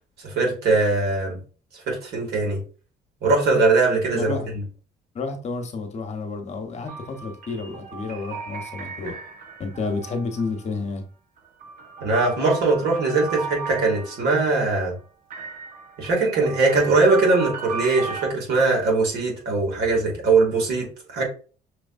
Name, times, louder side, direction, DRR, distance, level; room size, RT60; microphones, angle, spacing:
voice 1, 0.2-1.4 1.9-2.6 3.2-4.4 12.0-14.9 16.0-21.2, right 3 dB, 75° right, 2.3 m, -21 dB
voice 2, 4.1-4.5 5.1-9.2 9.6-11.0, left 3 dB, 40° left, 1.0 m, -30 dB
sound 1, 6.9-10.7 11.4-14.5 15.3-18.3, right 5 dB, 55° right, 1.0 m, -36 dB
6.1 x 3.0 x 2.6 m
cardioid pair, 110°, 17 cm